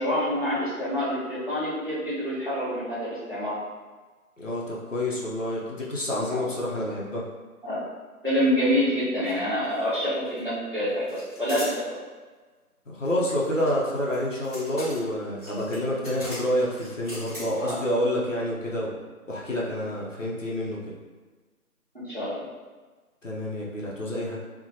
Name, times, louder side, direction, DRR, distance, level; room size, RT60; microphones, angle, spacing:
voice 1, 0.0-3.6 6.3-6.5 7.6-7.8 8.2-12.0 17.6-17.8 21.9-22.5, equal, 35° right, -11 dB, 0.8 m, -27 dB
voice 2, 4.4-7.3 12.9-19.0 19.3-20.9 23.2-24.4, equal, 55° left, -4 dB, 0.5 m, -28 dB
sound 1, 9.2-9.4 9.6-10.4 11.1-11.8 13.0-17.9, equal, ahead, 1.1 m, -41 dB
2.8 x 2.1 x 2.6 m, 1.4 s
figure-of-eight pair, 180°, 45 cm